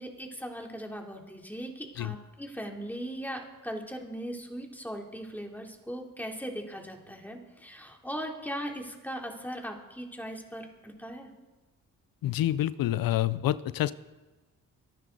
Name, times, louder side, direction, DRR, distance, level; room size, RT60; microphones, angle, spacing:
voice 1, 0.0-11.3, equal, 5° left, 1 dB, 3.2 m, -39 dB
voice 2, 12.2-13.9, left 13 dB, 75° left, 18 dB, 0.6 m, -27 dB
24.5 x 10.0 x 4.0 m, 1.2 s
supercardioid pair, 50°, 35 cm